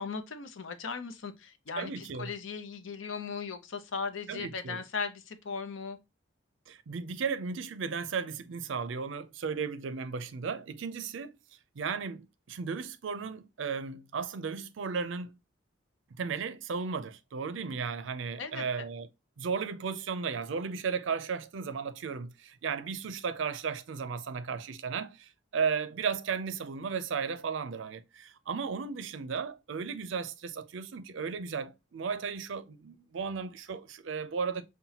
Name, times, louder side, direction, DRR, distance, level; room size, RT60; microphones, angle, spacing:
voice 1, 0.0-6.0 18.4-18.6, left 5 dB, 85° left, 0.6 m, -37 dB
voice 2, 1.8-2.3 4.3-4.8 6.7-11.4 11.8-15.4 16.1-19.1 19.4-34.6, right 5 dB, 75° right, 0.4 m, -35 dB
5.6 x 2.2 x 2.8 m
head